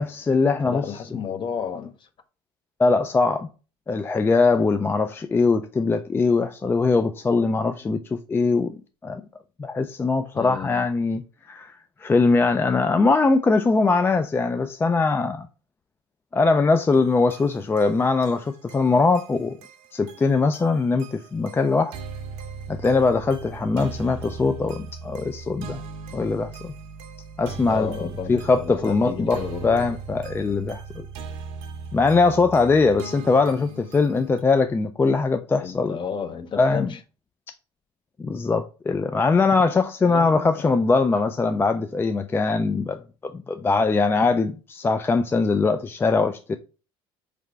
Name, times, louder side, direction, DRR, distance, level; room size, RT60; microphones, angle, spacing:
voice 1, 0.0-0.8 2.8-3.5 3.9-9.2 9.6-15.5 16.3-19.6 19.9-21.9 22.7-25.8 26.1-26.7 27.4-27.9 28.3-31.1 31.9-36.0 36.6-36.9 38.2-46.6, left 4 dB, 20° left, 0.3 m, -21 dB
voice 2, 0.6-2.1 7.6-7.7 10.3-10.7 27.7-29.8 35.6-37.0 40.0-40.7, left 7 dB, 40° left, 0.7 m, -32 dB
sound 1, 16.9-34.4, right 5 dB, 75° right, 0.8 m, -39 dB
3.8 x 3.3 x 3.2 m
supercardioid pair, 85°, 12 cm